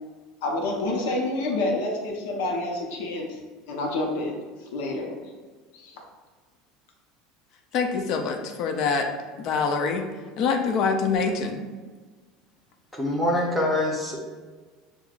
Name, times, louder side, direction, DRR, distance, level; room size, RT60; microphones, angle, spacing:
voice 1, 0.4-3.4 3.7-4.4 4.7-5.2 5.7-6.0, left 2 dB, 85° left, 0 dB, 0.8 m, -28 dB
voice 2, 7.7-9.1 9.4-10.1 10.4-11.6, left 5 dB, 45° left, 5 dB, 0.5 m, -25 dB
voice 3, 12.9-14.2, left 1 dB, 5° left, -3 dB, 0.7 m, -24 dB
6.7 x 2.3 x 2.4 m, 1.4 s
cardioid pair, 160°, 0 cm